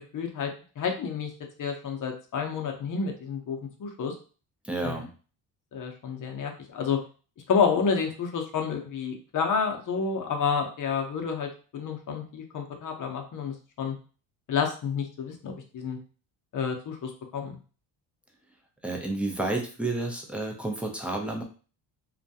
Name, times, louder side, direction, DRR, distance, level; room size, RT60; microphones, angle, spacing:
voice 1, 0.1-0.5 0.8-1.3 1.6-4.1 4.8-5.0 5.7-7.0 7.5-14.0 14.5-16.0 16.5-17.6, left 6 dB, 40° left, 3 dB, 0.7 m, -29 dB
voice 2, 4.6-5.1 18.8-21.4, right 2 dB, 5° right, 1 dB, 0.5 m, -30 dB
2.3 x 2.2 x 2.7 m, 0.38 s
supercardioid pair, 80°, 47 cm